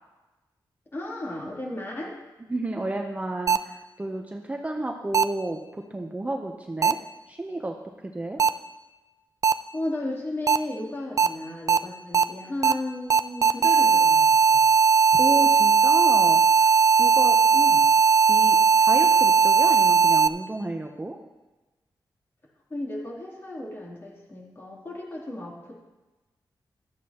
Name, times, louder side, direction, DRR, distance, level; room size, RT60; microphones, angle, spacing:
voice 1, 0.9-2.1 9.7-14.6 17.5-17.8 22.7-25.8, left 1 dB, 30° left, -3 dB, 3.0 m, -34 dB
voice 2, 2.5-7.0 7.3-7.7 8.0-8.4 15.1-17.4 18.3-21.2, right 2 dB, 15° right, 3 dB, 0.8 m, -31 dB
sound 1, 3.5-3.6 5.1-5.2 6.8-6.9 8.4-8.5 9.4-9.5 10.5-10.6 11.2-11.3 11.7-11.8 12.1-12.2 12.6-12.7 13.1-20.3, right 6 dB, 45° right, 0.4 m, -18 dB
15.0 x 12.5 x 3.0 m, 1.1 s
wide cardioid pair, 130°, 8 cm